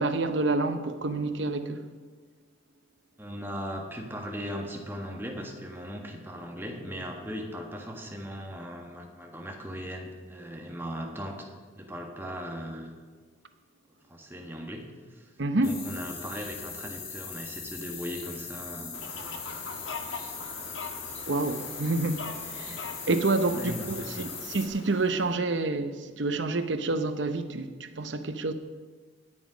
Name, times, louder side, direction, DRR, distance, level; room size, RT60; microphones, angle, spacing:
voice 1, 0.0-1.8 15.4-15.8 21.3-22.3 22.5-28.5, right 2 dB, 70° right, 0.8 m, -28 dB
voice 2, 3.2-11.5 11.8-13.0 14.1-14.8 15.1-19.4 23.5-24.3, equal, 10° right, 1.5 m, -38 dB
sound 1, 15.6-24.7, left 5 dB, 50° left, 2.7 m, -40 dB
Fowl, 18.9-25.4, left 4 dB, 80° left, 1.3 m, -42 dB
19.5 x 7.3 x 5.1 m
head